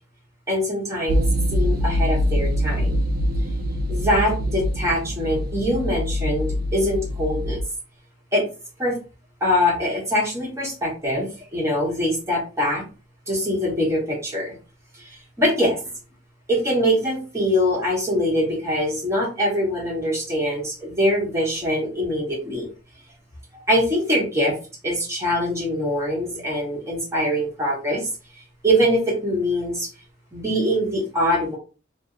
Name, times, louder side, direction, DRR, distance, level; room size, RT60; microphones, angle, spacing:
voice 1, 0.5-3.0 3.9-7.6 8.3-8.5 8.8-9.0 9.4-12.8 13.3-14.5 14.9-15.1 15.4-15.8 16.5-22.7 23.5-24.5 24.8-28.1 28.6-29.9 30.3-31.6, equal, 15° right, -3 dB, 1.0 m, -23 dB
sound 1, 1.1-7.6, equal, 45° right, 0.3 m, -24 dB
2.6 x 2.1 x 3.6 m, 0.34 s
head